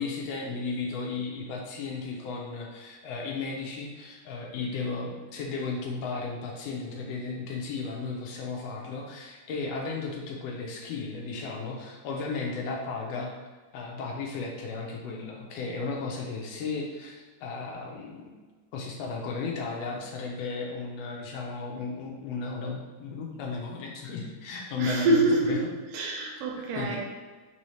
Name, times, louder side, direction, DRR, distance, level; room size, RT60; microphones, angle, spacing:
voice 1, 0.0-13.3 13.7-18.5 18.7-25.6 26.6-27.0, left 4 dB, 80° left, 0 dB, 1.5 m, -34 dB
voice 2, 24.8-25.6 25.9-27.0, right 2 dB, 75° right, -2 dB, 1.5 m, -25 dB
5.4 x 2.8 x 3.1 m, 1.4 s
omnidirectional pair, 3.4 m